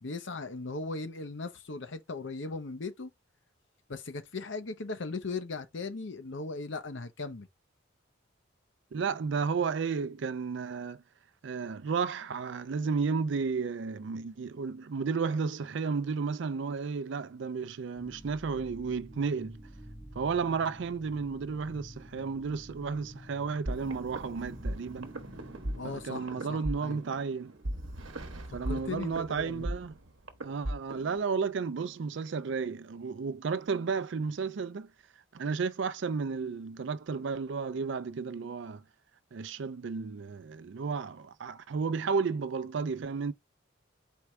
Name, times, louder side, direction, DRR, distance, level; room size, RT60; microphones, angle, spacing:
voice 1, 0.0-3.1 3.9-7.5 25.8-27.0 28.7-29.7, left 3 dB, 65° left, 0.8 m, -38 dB
voice 2, 8.9-11.0 11.4-19.6 20.2-25.1 25.8-27.5 28.5-30.0 30.4-34.9 35.3-38.8 39.3-43.3, right 5 dB, 60° right, 0.4 m, -33 dB
sound 1, 18.0-26.1, equal, ahead, 1.4 m, -49 dB
sound 2, 23.7-31.2, right 1 dB, 80° right, 1.0 m, -38 dB
4.6 x 3.5 x 3.2 m
head